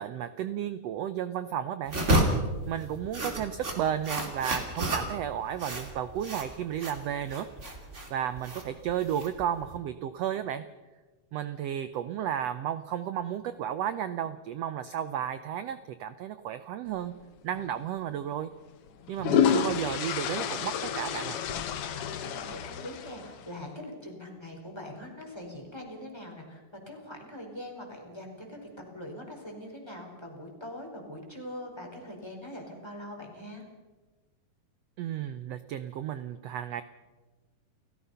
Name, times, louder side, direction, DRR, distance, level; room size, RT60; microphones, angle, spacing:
voice 1, 0.0-2.0 2.7-7.5 8.1-10.6 11.3-17.1 17.4-18.5 19.1-21.4 35.0-36.8, right 10 dB, 80° right, 12 dB, 1.4 m, -33 dB
sound 1, 1.9-9.8, right 1 dB, 20° right, 2.8 m, -31 dB
sound 2, 17.5-17.7 18.9-23.5, left 8 dB, 65° left, 1.5 m, -29 dB
voice 2, 22.1-33.7, left 1 dB, 5° left, 0 dB, 4.5 m, -42 dB
29.5 x 15.5 x 5.6 m, 1.3 s
omnidirectional pair, 3.8 m